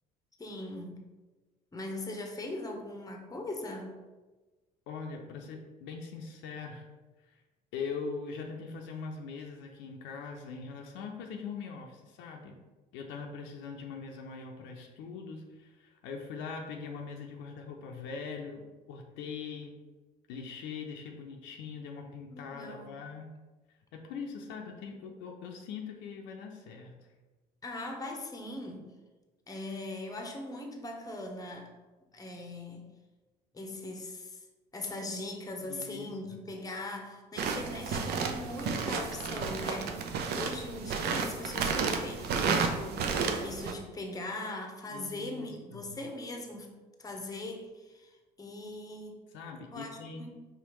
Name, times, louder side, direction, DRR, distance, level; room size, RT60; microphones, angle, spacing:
voice 1, 0.4-1.0 1.7-4.0 22.3-23.0 27.6-28.9 29.5-31.7 32.1-32.9 33.5-34.4 34.7-39.9 40.4-46.7 47.0-49.2 49.7-50.5, left 2 dB, 20° left, 3 dB, 0.8 m, -40 dB
voice 2, 4.9-6.8 7.2-7.4 7.7-12.6 12.9-19.7 20.3-23.3 23.9-27.0 35.7-36.4 44.9-46.0 49.3-50.3, left 5 dB, 65° left, 2 dB, 0.6 m, -42 dB
sound 1, 37.4-43.7, right 5 dB, 55° right, 0.5 m, -32 dB
4.9 x 3.1 x 3.0 m, 1.2 s
hypercardioid pair, 60°, 20 cm